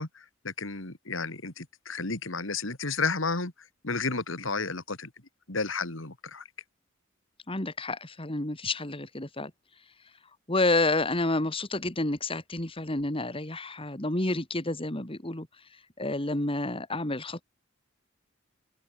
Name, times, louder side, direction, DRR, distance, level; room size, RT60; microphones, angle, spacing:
voice 1, 0.0-3.5 3.8-5.1 5.5-6.4, left 4 dB, 65° left, 2.8 m, -32 dB
voice 2, 7.5-9.5 10.5-15.5 16.0-17.4, left 2 dB, 25° left, 2.4 m, -29 dB
open air
head